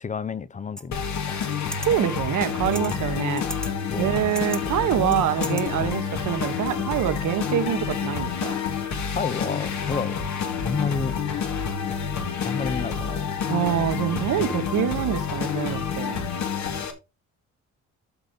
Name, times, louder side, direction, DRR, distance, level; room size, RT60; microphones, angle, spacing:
voice 1, 0.0-1.4 2.7-3.0 3.9-4.2 5.0-5.9 9.1-10.2 10.6-11.1 11.9-12.2 12.4-13.3 14.4-14.6, left 5 dB, 25° left, 0.7 m, -31 dB
sound 1, 0.8-0.9 1.5-1.9 2.7-3.0 3.4-3.7 4.1-4.6 5.1-5.6, equal, ahead, 1.2 m, -35 dB
sound 2, 0.9-16.9, left 7 dB, 65° left, 2.0 m, -28 dB
voice 2, 1.8-3.6 4.0-8.6 13.5-16.2, right 11 dB, 80° right, 1.4 m, -25 dB
12.5 x 5.1 x 4.0 m
cardioid pair, 90°, 30 cm